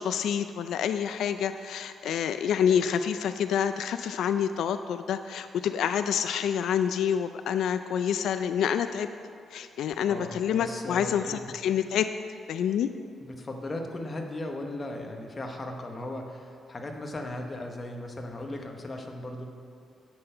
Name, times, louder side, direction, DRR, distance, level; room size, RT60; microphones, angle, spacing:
voice 1, 0.0-9.1 9.5-12.1 12.5-12.9, left 8 dB, 80° left, 10 dB, 0.3 m, -27 dB
voice 2, 10.1-11.5 13.2-19.4, left 1 dB, 20° left, 2 dB, 0.9 m, -37 dB
10.5 x 7.8 x 5.5 m, 2.4 s
wide cardioid pair, 175°, 0 cm